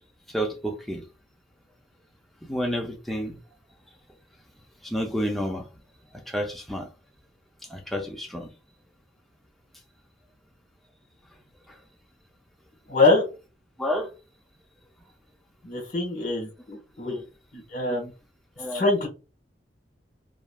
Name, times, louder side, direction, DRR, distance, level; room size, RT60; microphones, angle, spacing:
voice 1, 0.3-1.0 2.4-3.4 4.8-5.7 6.1-6.9 7.7-8.5 11.7-11.8 13.8-14.1 17.0-17.2 17.8-18.0 18.6-18.8, equal, ahead, 0.4 m, -30 dB
voice 2, 12.9-13.2 15.6-17.1 17.5-18.1 18.7-19.1, left 3 dB, 45° left, 1.2 m, -24 dB
3.0 x 2.4 x 2.3 m
head